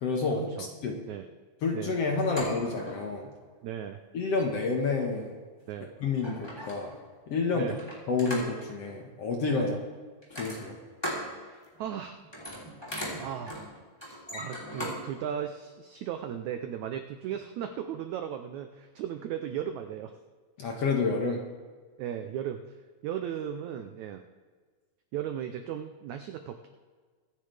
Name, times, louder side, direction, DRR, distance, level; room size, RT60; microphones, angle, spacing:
voice 1, 0.0-1.0 1.6-3.3 4.1-5.3 6.0-6.9 7.3-7.7 8.1-9.7 10.4-10.8 20.6-21.4, left 4 dB, 55° left, 1 dB, 1.9 m, -29 dB
sound 1, 2.2-3.1 4.2-4.5 5.6-5.7 6.1-7.0 7.8-8.7 10.2-11.3 11.6-11.9 12.2-15.0 15.4-15.5, equal, 5° left, 3.2 m, -38 dB
voice 2, 3.6-4.0 5.7-5.9 7.5-7.8 9.5-9.8 11.4-12.2 13.2-13.7 14.0-20.1 22.0-22.8 23.0-24.2 25.1-26.7, right 9 dB, 85° right, 6 dB, 1.6 m, -36 dB
23.5 x 9.9 x 3.4 m, 1.5 s
omnidirectional pair, 4.2 m